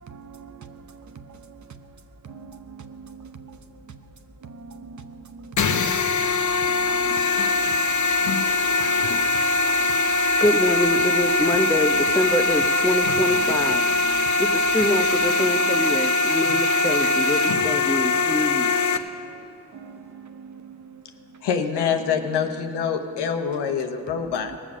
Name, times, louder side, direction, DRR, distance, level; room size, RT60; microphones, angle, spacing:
voice 1, 0.1-1.6 2.2-3.6 4.4-5.8 6.6-9.9 10.2-10.4 14.0-14.3 17.8-18.0 19.7-21.0 24.4-24.6, right 5 dB, 45° right, 8 dB, 0.9 m, -43 dB
sound 1, 5.6-19.0, left 3 dB, 50° left, 0.9 m, -22 dB
voice 2, 10.4-13.8 14.4-18.7, left 1 dB, 5° left, 6 dB, 0.8 m, -24 dB
voice 3, 21.4-24.5, left 7 dB, 90° left, 5 dB, 1.0 m, -25 dB
19.0 x 7.4 x 6.2 m, 2.4 s
cardioid pair, 75°, 39 cm